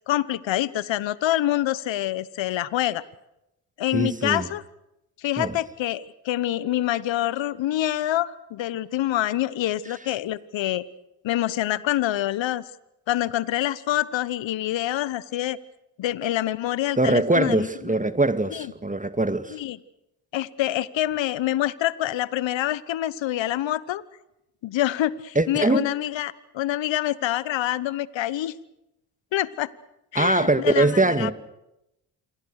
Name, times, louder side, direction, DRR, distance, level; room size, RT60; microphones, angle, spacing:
voice 1, 0.1-3.0 3.8-4.6 5.2-10.8 11.2-12.6 13.1-15.6 16.0-17.7 18.5-18.7 19.5-19.8 20.3-24.0 24.6-28.5 29.3-29.7 30.1-31.3, left 13 dB, 65° left, 1.1 m, -26 dB
voice 2, 3.9-4.5 5.4-5.6 17.0-19.6 25.4-25.9 30.1-31.3, right 2 dB, 15° right, 2.0 m, -22 dB
27.5 x 23.5 x 6.5 m
hypercardioid pair, 45°, 48 cm